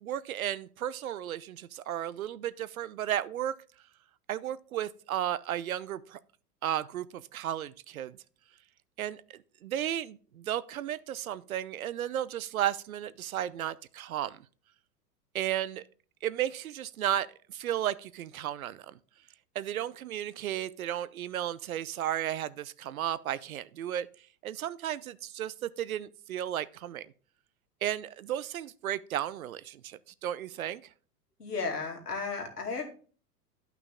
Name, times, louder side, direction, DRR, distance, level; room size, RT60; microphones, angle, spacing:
voice 1, 0.0-3.5 4.3-6.2 6.6-8.2 9.0-14.4 15.3-15.8 16.2-19.0 19.5-24.1 24.4-27.1 27.8-30.8, right 11 dB, 60° right, 0.6 m, -34 dB
voice 2, 31.4-32.9, left 4 dB, 75° left, 2.5 m, -34 dB
12.5 x 5.8 x 3.5 m
figure-of-eight pair, 95°, 48 cm